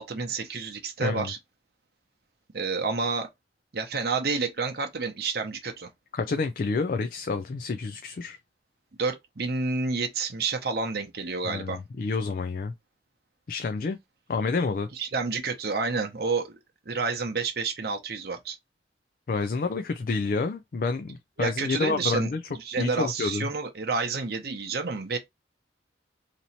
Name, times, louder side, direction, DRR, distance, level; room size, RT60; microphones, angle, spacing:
voice 1, 0.0-1.4 2.5-3.3 3.7-5.9 9.0-11.8 14.9-16.6 16.9-18.6 21.4-25.2, right 4 dB, 60° right, 0.8 m, -29 dB
voice 2, 1.0-1.3 6.1-8.4 11.4-12.7 13.5-14.0 14.3-14.9 19.3-22.4 22.8-23.5, left 4 dB, 50° left, 0.4 m, -29 dB
3.0 x 2.7 x 4.1 m
head